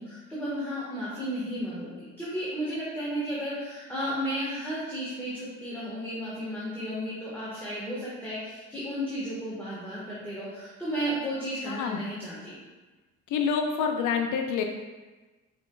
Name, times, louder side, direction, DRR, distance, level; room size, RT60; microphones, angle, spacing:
voice 1, 0.0-12.5, equal, 5° left, -9 dB, 1.3 m, -33 dB
voice 2, 11.6-12.0 13.3-14.6, left 6 dB, 80° left, 4 dB, 0.5 m, -27 dB
5.1 x 4.3 x 2.2 m, 1.2 s
cardioid pair, 90°, 30 cm